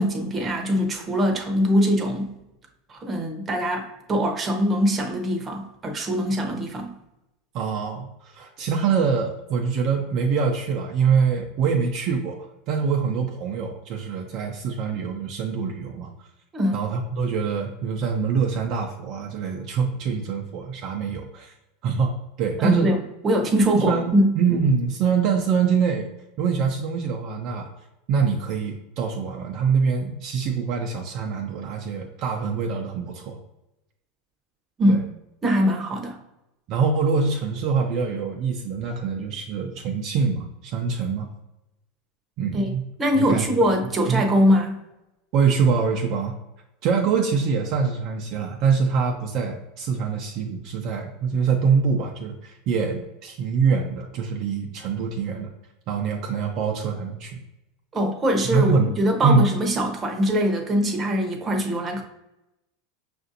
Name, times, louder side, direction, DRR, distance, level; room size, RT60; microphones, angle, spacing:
voice 1, 0.0-2.3 2.9-6.9 16.5-16.8 22.6-23.0 23.2-24.3 34.8-35.1 35.4-36.2 42.5-42.7 43.0-44.8 57.9-62.0, equal, 25° right, 3 dB, 0.8 m, -22 dB
voice 2, 7.5-12.4 12.7-16.1 16.7-21.5 21.8-22.1 22.4-22.9 23.7-26.1 26.4-27.7 28.1-33.4 34.9-35.0 36.7-41.3 42.4-42.8 43.1-43.4 44.1-44.2 45.3-46.4 46.8-55.5 55.9-57.4 58.5-58.9 59.2-59.5, right 5 dB, 55° right, 1 dB, 0.5 m, -24 dB
5.6 x 2.6 x 2.6 m, 0.92 s
hypercardioid pair, 105°, 0 cm